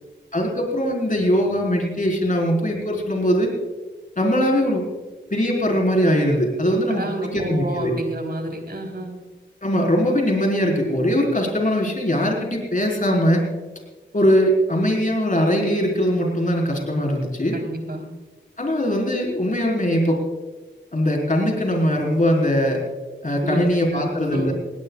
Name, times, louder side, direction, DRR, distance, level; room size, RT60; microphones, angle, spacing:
voice 1, 0.3-3.5 4.2-4.8 5.3-7.9 9.6-13.4 14.1-17.6 18.6-20.2 20.9-22.8 23.2-24.5, equal, 45° left, 0 dB, 4.8 m, -21 dB
voice 2, 6.9-9.2 17.5-18.1 23.4-23.6 23.9-24.5, right 1 dB, 55° right, 2 dB, 4.0 m, -30 dB
19.5 x 19.0 x 2.5 m, 1.3 s
wide cardioid pair, 55°, 19 cm